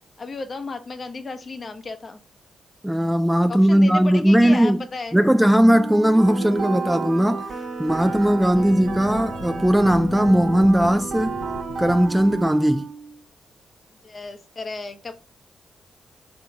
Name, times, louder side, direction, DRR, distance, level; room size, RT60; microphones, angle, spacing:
voice 1, 0.2-2.2 3.5-5.2 8.4-8.6 14.0-15.1, left 3 dB, 45° left, 0.8 m, -34 dB
voice 2, 2.8-4.8 5.1-7.5 7.8-11.4 11.8-12.9, equal, 5° right, 0.4 m, -18 dB
Wind instrument woodwind instrument, 5.7-13.2, right 7 dB, 85° right, 0.4 m, -37 dB
sound 1, 6.2-12.5, right 3 dB, 60° right, 1.1 m, -32 dB
Wind, 7.7-12.5, left 5 dB, 85° left, 0.4 m, -39 dB
3.8 x 2.7 x 4.6 m
supercardioid pair, 50°, 0 cm